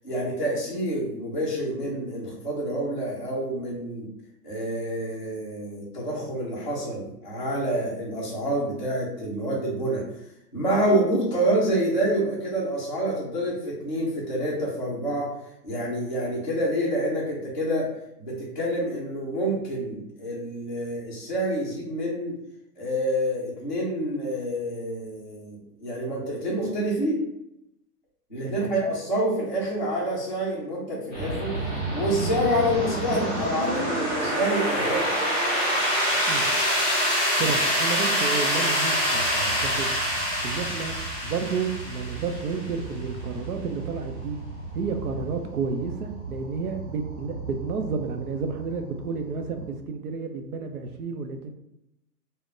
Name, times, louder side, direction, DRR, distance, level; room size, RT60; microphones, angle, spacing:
voice 1, 0.0-4.1 4.4-10.0 10.5-15.3 15.6-17.9 18.2-22.4 22.8-27.2 28.3-31.6 31.9-35.1, right 1 dB, 35° left, -9 dB, 0.4 m, -27 dB
sound 1, 31.1-49.7, equal, 10° left, 1.0 m, -27 dB
voice 2, 36.3-36.6 37.4-39.9 40.4-41.0 41.2-44.4 44.7-51.5, right 5 dB, 65° right, 5 dB, 0.6 m, -31 dB
2.4 x 2.1 x 3.6 m, 0.82 s
hypercardioid pair, 180°, 48 cm